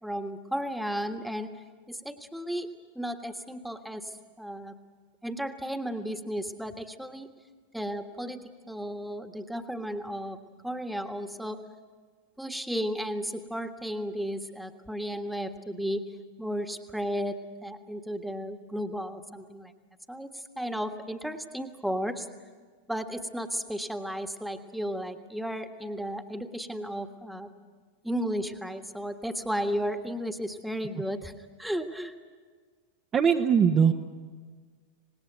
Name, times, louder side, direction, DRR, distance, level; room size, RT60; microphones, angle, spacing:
voice 1, 0.0-1.5 1.9-2.7 2.9-4.7 5.2-7.3 7.7-10.4 10.6-11.6 12.4-19.7 20.1-22.3 22.9-27.5 28.0-32.1, equal, ahead, 8 dB, 1.5 m, -34 dB
voice 2, 33.1-33.9, right 7 dB, 25° right, 4 dB, 1.0 m, -21 dB
26.0 x 19.5 x 9.3 m, 1.5 s
figure-of-eight pair, 90°, 0 cm